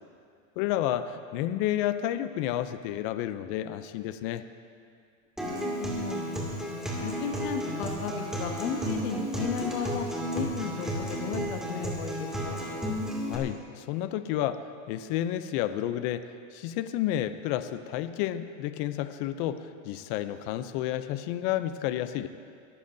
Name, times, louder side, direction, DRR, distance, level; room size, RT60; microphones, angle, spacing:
voice 1, 0.6-4.4 13.3-16.2 16.5-22.3, left 12 dB, 40° left, 11 dB, 0.5 m, -31 dB
voice 2, 5.4-6.2 6.7-10.1 10.3-12.7, left 6 dB, 80° left, 3 dB, 1.8 m, -35 dB
Acoustic guitar, 5.4-13.4, equal, ahead, 2.2 m, -33 dB
23.0 x 14.0 x 2.6 m, 2.2 s
supercardioid pair, 160°, 40 cm